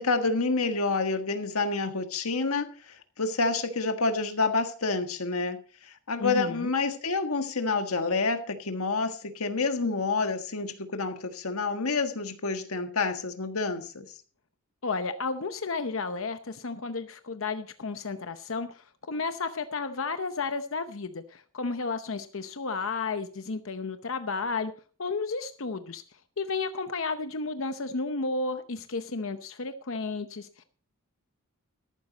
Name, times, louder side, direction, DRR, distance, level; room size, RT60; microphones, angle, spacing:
voice 1, 0.0-5.6 6.1-14.1, left 3 dB, 80° left, 7 dB, 1.6 m, -28 dB
voice 2, 6.2-6.7 14.8-24.7 25.0-26.0 26.4-30.6, left 4 dB, 65° left, 9 dB, 0.8 m, -32 dB
14.0 x 11.5 x 4.1 m, 0.40 s
head